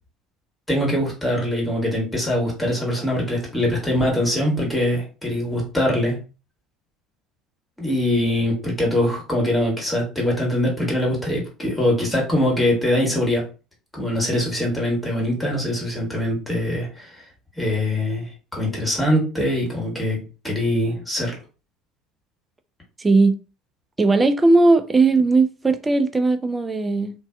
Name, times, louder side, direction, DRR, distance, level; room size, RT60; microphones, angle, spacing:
voice 1, 0.7-6.2 7.8-13.4 13.9-17.2 17.6-21.4, left 1 dB, 10° left, 1.3 m, -23 dB
voice 2, 23.0-23.4 24.0-27.1, right 3 dB, 20° right, 0.3 m, -17 dB
2.6 x 2.2 x 2.2 m
hypercardioid pair, 70°, 0 cm